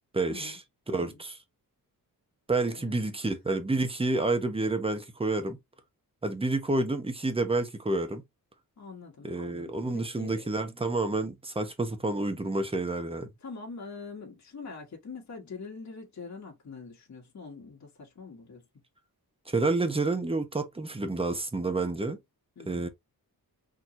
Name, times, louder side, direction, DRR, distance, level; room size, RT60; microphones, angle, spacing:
voice 1, 0.1-0.6 0.9-1.4 2.5-5.6 6.2-8.2 9.2-13.3 19.5-22.2 22.7-22.9, right 2 dB, 15° right, 0.9 m, -29 dB
voice 2, 2.6-3.1 8.8-10.4 13.4-18.6 22.6-22.9, left 4 dB, 45° left, 1.4 m, -44 dB
4.3 x 3.0 x 2.6 m
wide cardioid pair, 100°, 37 cm